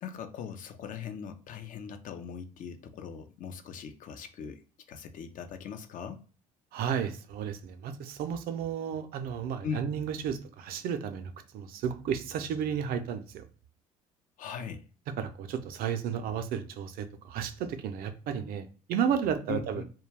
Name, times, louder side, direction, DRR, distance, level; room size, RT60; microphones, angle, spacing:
voice 1, 0.0-4.6 4.9-6.2 9.6-9.9 14.4-14.9 19.5-19.8, left 6 dB, 50° left, 0.5 m, -40 dB
voice 2, 6.7-13.4 15.2-19.8, right 8 dB, 55° right, 0.4 m, -33 dB
2.3 x 2.1 x 3.2 m
hypercardioid pair, 60°, 18 cm